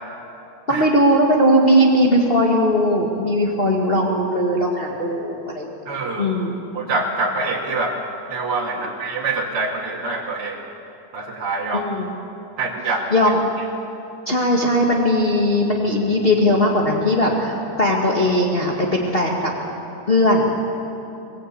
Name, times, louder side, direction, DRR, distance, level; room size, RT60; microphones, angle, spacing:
voice 1, 0.7-5.7 6.2-6.5 8.8-8.9 11.7-12.1 13.1-13.4 14.3-19.5 20.1-20.5, equal, 25° left, -2 dB, 2.0 m, -18 dB
voice 2, 5.9-6.3 6.7-8.0 8.3-10.6 11.1-11.9 12.6-13.1, right 3 dB, 80° right, -3 dB, 2.8 m, -25 dB
23.0 x 20.0 x 8.5 m, 2.9 s
omnidirectional pair, 2.4 m